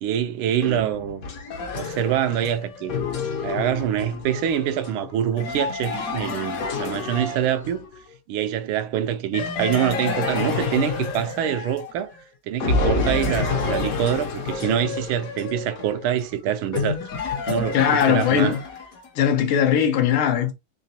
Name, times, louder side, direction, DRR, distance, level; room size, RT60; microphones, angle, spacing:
voice 1, 0.0-1.3 1.7-3.0 3.4-7.9 8.3-12.1 12.4-17.0 17.5-18.5, right 10 dB, 80° right, 1.4 m, -25 dB
sound 1, 0.6-8.0 9.3-12.2 12.6-19.1, left 4 dB, 55° left, 1.0 m, -29 dB
voice 2, 17.7-18.6 19.1-20.5, left 8 dB, 75° left, 1.5 m, -19 dB
3.9 x 3.2 x 2.7 m
omnidirectional pair, 2.4 m